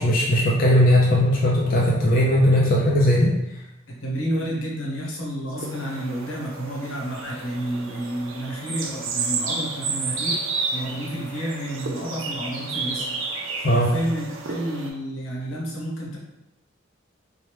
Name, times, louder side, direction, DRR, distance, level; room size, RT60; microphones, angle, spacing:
voice 1, 0.0-3.3 13.6-13.9, equal, 45° left, -3 dB, 0.4 m, -18 dB
voice 2, 3.9-13.1 13.6-16.2, equal, 85° left, -3 dB, 0.9 m, -30 dB
sound 1, 5.6-14.9, right 4 dB, 80° right, 0.5 m, -31 dB
2.9 x 2.2 x 3.2 m, 0.91 s
head